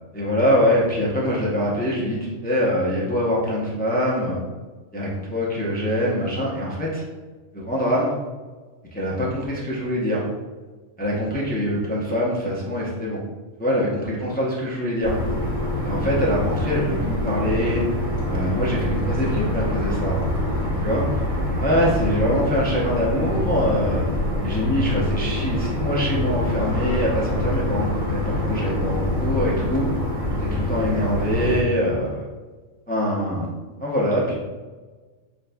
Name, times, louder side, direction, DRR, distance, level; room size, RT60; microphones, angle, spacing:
voice 1, 0.1-4.4 4.9-7.0 7.5-8.2 8.9-10.2 11.0-13.2 13.6-15.2 15.8-17.8 18.3-20.2 20.8-21.1 21.6-24.0 24.4-29.9 30.4-32.2 32.9-33.5 33.8-34.3, equal, 15° left, -5 dB, 0.3 m, -24 dB
sound 1, 15.0-31.6, left 1 dB, 30° right, 0.8 m, -25 dB
5.9 x 2.5 x 2.2 m, 1.3 s
omnidirectional pair, 1.4 m